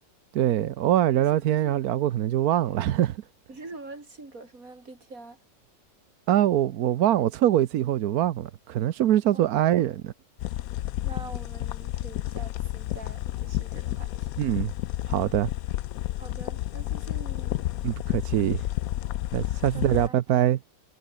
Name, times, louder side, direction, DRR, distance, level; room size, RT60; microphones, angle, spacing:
voice 1, 0.3-3.2 6.3-10.1 14.4-14.7 15.1-15.5 17.8-18.6 19.3-20.6, right 12 dB, 65° right, 1.1 m, -23 dB
voice 2, 1.2-2.1 3.5-5.4 9.3-9.8 11.0-14.3 16.2-17.6 19.7-20.4, right 3 dB, 45° right, 5.0 m, -45 dB
sound 1, 10.4-20.1, left 14 dB, 70° left, 0.8 m, -31 dB
omnidirectional pair, 2.0 m